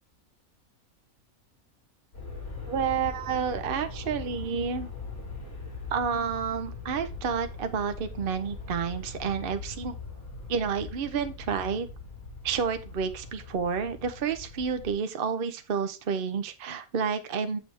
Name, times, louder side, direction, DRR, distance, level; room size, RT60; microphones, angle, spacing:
Aircraft, 2.1-14.9, left 3 dB, 85° left, 4.7 m, -41 dB
voice 1, 2.7-4.9 5.9-10.0 10.5-11.9 12.4-17.6, right 6 dB, 50° right, 9 dB, 0.8 m, -30 dB
7.6 x 6.9 x 3.3 m, 0.29 s
omnidirectional pair, 1.5 m